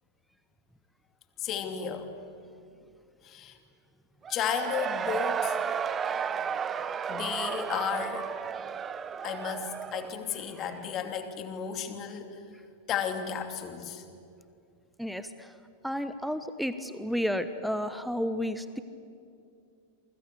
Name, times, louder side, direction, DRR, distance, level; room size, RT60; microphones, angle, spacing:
voice 1, 1.4-2.1 3.2-3.6 4.3-5.6 7.1-8.3 9.2-12.4 12.9-14.0, left 8 dB, 35° left, 7 dB, 2.7 m, -33 dB
Cheering / Crowd, 4.2-11.0, right 7 dB, 20° right, 1.0 m, -33 dB
voice 2, 15.0-15.5 15.8-18.8, equal, ahead, 11 dB, 1.1 m, -32 dB
28.0 x 24.5 x 8.3 m, 2.5 s
figure-of-eight pair, 90°, 0 cm